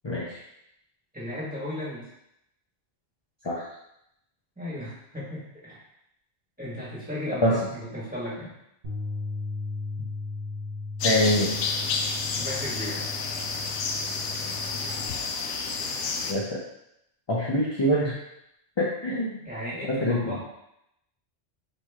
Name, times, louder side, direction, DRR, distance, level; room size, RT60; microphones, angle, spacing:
voice 1, 0.0-0.4 3.4-3.6 7.4-7.6 11.0-11.5 16.3-16.6 17.3-18.2 18.8-19.3 19.9-20.3, equal, 35° left, -5 dB, 0.5 m, -24 dB
voice 2, 1.1-2.1 4.6-5.8 6.6-8.5 12.4-13.0 19.4-20.4, left 1 dB, 5° right, -8 dB, 1.5 m, -35 dB
Bass guitar, 8.8-15.1, left 3 dB, 65° right, 1.4 m, -36 dB
sound 1, 11.0-16.3, left 4 dB, 75° left, 0.9 m, -30 dB
4.6 x 3.0 x 3.5 m, 0.81 s
omnidirectional pair, 1.2 m